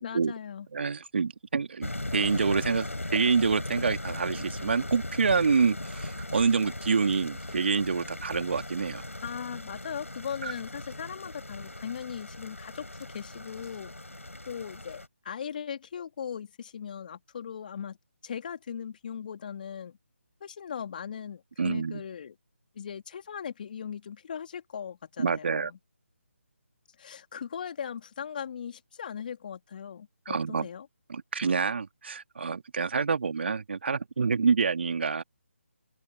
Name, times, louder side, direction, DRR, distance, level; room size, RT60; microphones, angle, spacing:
voice 1, 0.0-0.7 9.2-13.9 14.5-18.0 18.2-20.0 20.4-22.4 22.7-25.8 27.0-30.9, left 7 dB, 40° left, 3.2 m, -39 dB
voice 2, 0.7-9.0 10.4-10.5 21.6-22.0 25.2-25.7 30.3-30.7 31.1-35.2, right 5 dB, 55° right, 2.4 m, -27 dB
sound 1, 1.8-15.1, left 1 dB, 90° left, 4.3 m, -38 dB
open air
figure-of-eight pair, 150°, 7 cm